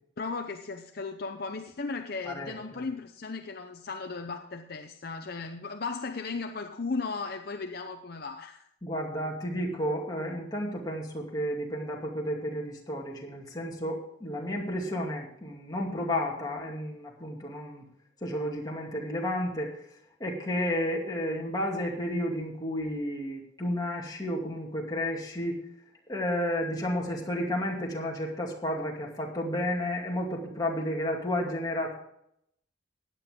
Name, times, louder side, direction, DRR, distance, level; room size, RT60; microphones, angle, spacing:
voice 1, 0.2-8.6, left 4 dB, 55° left, 6 dB, 0.7 m, -36 dB
voice 2, 2.2-2.9 8.8-17.8 18.2-19.7 20.2-25.6 26.1-31.9, left 1 dB, 20° left, -2 dB, 2.4 m, -32 dB
15.5 x 10.0 x 3.7 m, 0.75 s
head